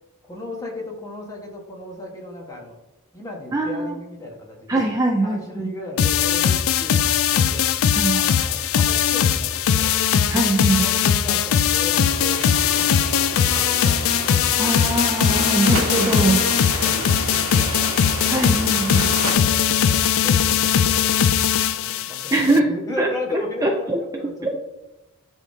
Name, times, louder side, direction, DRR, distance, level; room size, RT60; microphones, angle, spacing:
voice 1, 0.2-2.8 3.1-4.9 5.2-7.8 8.1-10.0 10.6-12.4 12.7-14.9 15.5-18.7 19.1-21.1 21.6-24.6, left 2 dB, 15° left, -2 dB, 1.3 m, -36 dB
voice 2, 3.5-3.9 4.7-5.7 7.9-8.2 10.3-10.8 14.6-16.4 18.3-19.1 22.3-23.1 23.6-24.0 24.4-24.6, right 2 dB, 15° right, 1 dB, 0.5 m, -22 dB
sound 1, 6.0-22.6, left 8 dB, 60° left, 0.4 m, -20 dB
sound 2, 12.0-19.4, right 3 dB, 80° right, 1.3 m, -31 dB
10.0 x 3.6 x 2.7 m, 1.0 s
head